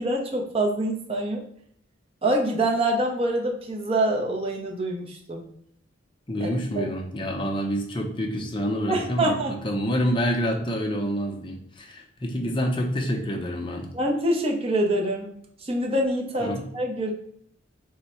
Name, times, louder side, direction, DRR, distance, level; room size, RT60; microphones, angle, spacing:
voice 1, 0.0-1.4 2.2-5.5 6.4-6.5 6.7-6.8 8.9-9.5 13.9-15.3 15.6-17.1, right 1 dB, 30° right, 0 dB, 0.6 m, -25 dB
voice 2, 6.3-13.9 16.4-16.7, equal, 25° left, 1 dB, 0.6 m, -27 dB
3.5 x 2.1 x 4.2 m, 0.67 s
head